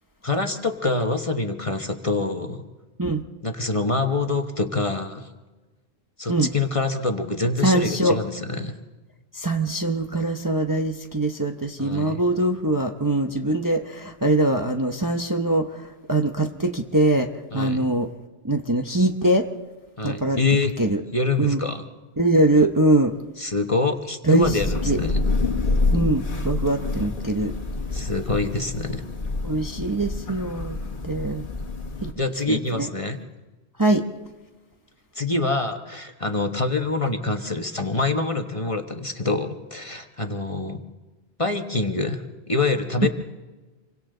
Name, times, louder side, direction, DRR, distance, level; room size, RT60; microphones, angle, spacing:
voice 1, 0.2-2.6 3.4-5.3 6.2-8.7 11.8-12.2 17.5-17.9 20.0-20.7 21.1-21.8 23.4-25.2 27.9-29.0 32.1-33.2 35.1-40.8 41.4-43.1, left 3 dB, 30° left, 5 dB, 1.2 m, -25 dB
voice 2, 7.6-8.2 9.3-15.7 16.1-17.3 17.5-18.1 18.4-19.4 20.0-20.4 20.8-21.0 21.4-21.6 22.2-23.1 24.3-24.5 24.9-25.0 25.9-27.5 29.4-30.8 31.0-31.4 32.0-32.1 32.5-32.9 33.8-34.0, right 2 dB, 20° right, 4 dB, 0.9 m, -22 dB
Thunder / Rain, 24.4-32.1, left 3 dB, 50° left, 1.8 m, -27 dB
28.0 x 24.0 x 3.9 m, 1.2 s
omnidirectional pair, 1.1 m